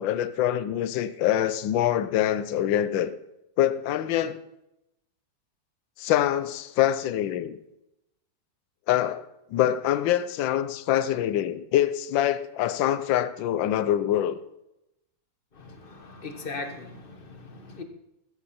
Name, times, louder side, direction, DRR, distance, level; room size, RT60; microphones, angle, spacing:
voice 1, 0.0-3.1 3.6-4.4 6.0-7.6 8.9-9.2 9.5-14.4, left 11 dB, 75° left, 1.4 m, -25 dB
voice 2, 15.5-17.8, left 3 dB, 30° left, 1.4 m, -39 dB
14.5 x 14.0 x 4.3 m
omnidirectional pair, 2.1 m